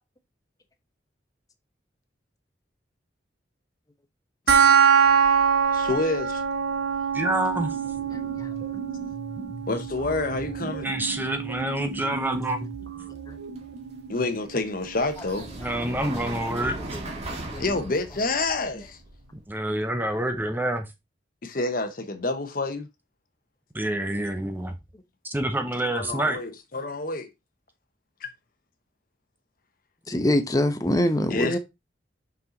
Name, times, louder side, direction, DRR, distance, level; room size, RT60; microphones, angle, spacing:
sound 1, 4.5-15.5, right 7 dB, 60° right, 1.1 m, -25 dB
sound 2, 5.0-19.4, right 2 dB, 35° right, 1.9 m, -41 dB
voice 1, 5.7-6.4 9.7-10.9 14.1-15.5 17.6-19.0 21.4-22.9 25.9-27.3 28.2-28.3 31.3-31.6, left 2 dB, 50° left, 1.0 m, -28 dB
voice 2, 7.1-7.8 10.8-12.7 15.6-17.0 19.5-20.9 23.7-24.8 25.2-26.4, right 1 dB, 10° right, 0.7 m, -27 dB
sound 3, 7.3-14.4, right 1 dB, 80° right, 1.4 m, -41 dB
voice 3, 17.3-17.6 30.1-31.6, left 1 dB, 20° left, 0.9 m, -25 dB
5.6 x 5.4 x 4.0 m
head